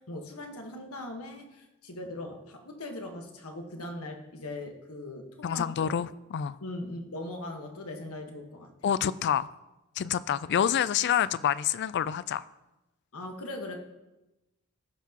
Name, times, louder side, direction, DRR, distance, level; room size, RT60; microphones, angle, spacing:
voice 1, 0.0-5.9 6.6-8.7 13.1-13.7, left 1 dB, 75° left, 1.3 m, -40 dB
voice 2, 5.4-6.6 8.8-9.5 10.0-12.4, left 9 dB, 50° left, 0.3 m, -27 dB
17.0 x 5.9 x 2.9 m
head